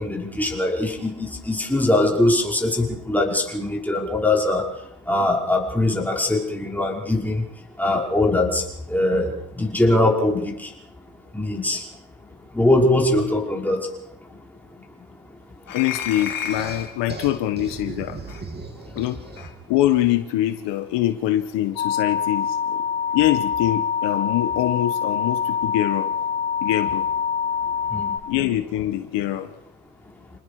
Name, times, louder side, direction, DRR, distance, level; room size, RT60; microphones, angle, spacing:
voice 1, 0.0-10.7 11.3-11.9 12.5-14.0 14.7-14.8 15.3-15.4 18.8-19.0 27.9-28.1, left 1 dB, 5° left, -2 dB, 5.6 m, -22 dB
voice 2, 15.7-18.2 18.9-19.2 19.7-22.8 23.1-26.1 26.6-27.1 28.3-29.5, left 13 dB, 85° left, 8 dB, 1.6 m, -24 dB
sound 1, 15.7-17.0 18.3-18.4 19.4-19.5, left 8 dB, 50° left, 2.5 m, -31 dB
sound 2, 16.2-19.7, right 3 dB, 25° right, 3.2 m, -37 dB
sound 3, 21.8-28.2, left 7 dB, 65° left, 4.4 m, -25 dB
29.0 x 19.5 x 5.0 m, 0.82 s
cardioid pair, 105°, 42 cm